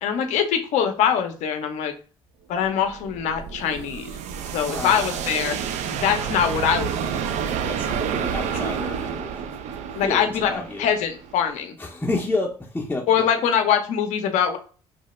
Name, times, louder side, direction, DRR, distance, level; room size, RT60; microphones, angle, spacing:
voice 1, 0.0-1.9 2.5-4.1 4.5-5.6 6.0-7.3 8.5-8.6 9.9-10.5 10.8-11.8 13.1-14.6, left 8 dB, 65° left, 6 dB, 0.6 m, -23 dB
sound 1, 2.6-11.6, right 7 dB, 65° right, 0.4 m, -29 dB
voice 2, 4.4-5.0 7.6-9.6 10.0-10.9 11.8-13.3, left 2 dB, 15° left, -2 dB, 0.6 m, -30 dB
3.1 x 2.1 x 3.0 m, 0.39 s
hypercardioid pair, 60°, 13 cm